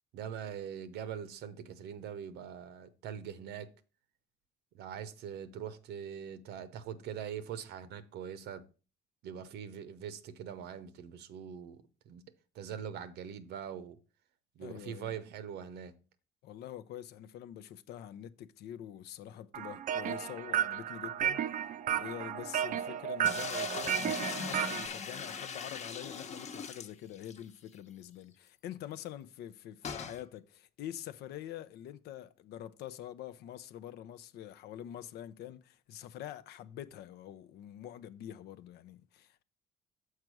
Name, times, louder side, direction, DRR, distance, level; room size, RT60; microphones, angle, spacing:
voice 1, 0.1-3.7 4.7-8.6 9.2-12.2 12.5-14.0 14.6-15.9, right 8 dB, 80° right, 0.8 m, -42 dB
voice 2, 14.6-15.1 16.4-21.4 21.9-39.4, left 11 dB, 75° left, 0.6 m, -46 dB
sound 1, 19.5-24.9, right 9 dB, 50° right, 0.5 m, -33 dB
sound 2, 23.2-27.4 27.8-27.9 28.1-28.2 29.8-30.2, left 5 dB, 40° left, 1.0 m, -39 dB
6.6 x 4.7 x 6.1 m
cardioid pair, 110°, 17 cm